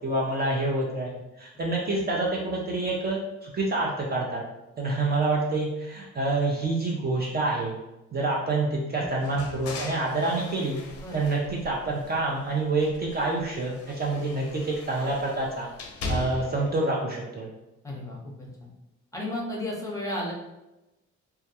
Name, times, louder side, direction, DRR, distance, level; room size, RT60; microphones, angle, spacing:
voice 1, 0.0-4.4 4.8-7.7 8.1-10.8 11.1-15.7 16.1-17.5, right 2 dB, 35° right, -3 dB, 0.4 m, -27 dB
sound 1, 9.2-12.4 12.8-16.7, left 2 dB, 55° left, 0.5 m, -39 dB
voice 2, 17.8-18.7 19.1-20.3, left 1 dB, 10° left, -3 dB, 0.7 m, -34 dB
2.2 x 2.1 x 2.8 m, 0.97 s
cardioid pair, 90°, 30 cm